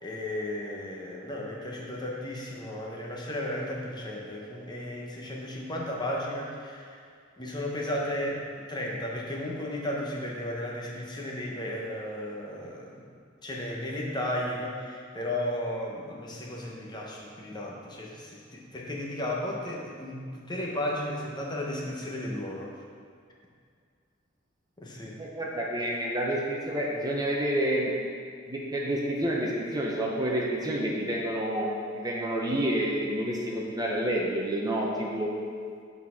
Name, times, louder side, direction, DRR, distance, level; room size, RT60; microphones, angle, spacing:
voice 1, 0.0-7.0 7.4-13.0 13.4-22.7 24.8-25.2, left 1 dB, 20° left, -2 dB, 0.9 m, -34 dB
voice 2, 25.2-27.9 28.5-35.3, right 1 dB, 20° right, -3 dB, 0.8 m, -29 dB
7.2 x 4.1 x 5.7 m, 2.2 s
head